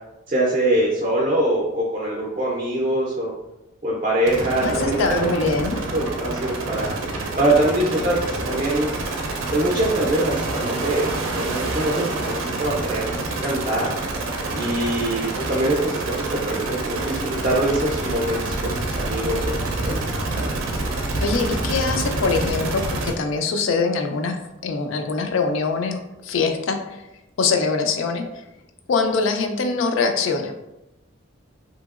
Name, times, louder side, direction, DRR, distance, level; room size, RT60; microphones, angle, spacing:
voice 1, 0.3-3.3 3.8-5.5 5.9-6.9 7.4-8.9 9.5-13.1 13.4-13.9 14.6-20.5, right 1 dB, 35° right, -3 dB, 0.4 m, -23 dB
sound 1, 4.2-23.1, right 2 dB, 90° right, 0.5 m, -27 dB
voice 2, 4.6-5.8 21.2-24.4 24.6-27.0 27.4-28.2 28.9-30.5, left 4 dB, 75° left, 5 dB, 0.4 m, -23 dB
2.8 x 2.7 x 2.4 m, 0.93 s
head